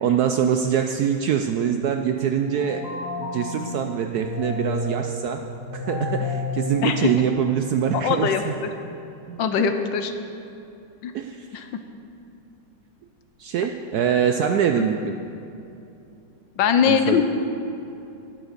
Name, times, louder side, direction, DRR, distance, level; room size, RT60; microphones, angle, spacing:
voice 1, 0.0-2.8 3.2-5.4 5.7-8.5 9.3-9.7 11.1-11.5 13.4-15.2 16.9-17.2, right 8 dB, 75° right, 5 dB, 0.9 m, -24 dB
sound 1, 2.4-7.9, left 1 dB, 10° left, 3.0 m, -31 dB
voice 2, 7.9-8.4 9.4-10.1 11.0-11.1 11.5-11.7 14.8-14.9 16.6-17.2, left 7 dB, 75° left, 8 dB, 1.4 m, -21 dB
10.5 x 8.9 x 6.6 m, 2.8 s
omnidirectional pair, 2.1 m